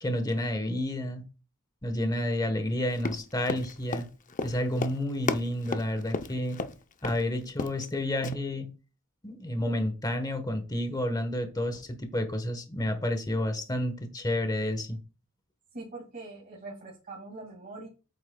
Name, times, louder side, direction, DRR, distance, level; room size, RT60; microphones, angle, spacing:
voice 1, 0.0-1.2 1.8-4.1 4.4-6.6 7.0-8.7 9.2-15.0, left 1 dB, 20° left, 7 dB, 1.1 m, -30 dB
Run, 2.9-6.7 7.0-7.2 7.5-7.9 8.2-8.3, left 3 dB, 35° left, 0.6 m, -33 dB
voice 2, 15.7-17.9, right 2 dB, 40° right, -1 dB, 2.2 m, -43 dB
8.9 x 8.2 x 2.3 m, 0.33 s
head